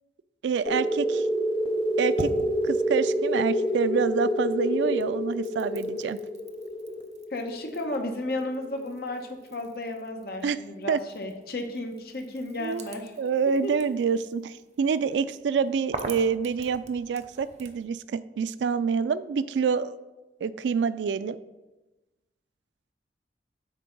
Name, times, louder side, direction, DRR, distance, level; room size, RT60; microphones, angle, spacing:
voice 1, 0.4-1.3 2.0-2.3 2.6-6.2 10.4-10.6 10.9-11.0 12.6-12.9 13.2-19.9 20.4-21.4, right 6 dB, 85° right, 15 dB, 0.3 m, -27 dB
sound 1, 0.7-9.0, equal, 30° left, 0.6 m, -28 dB
sound 2, 1.6-4.3 4.6-17.9, right 3 dB, 40° right, 0.6 m, -45 dB
voice 2, 7.3-13.1 13.6-13.7, left 1 dB, 60° left, 3 dB, 1.0 m, -33 dB
8.3 x 3.4 x 5.3 m, 1.1 s
head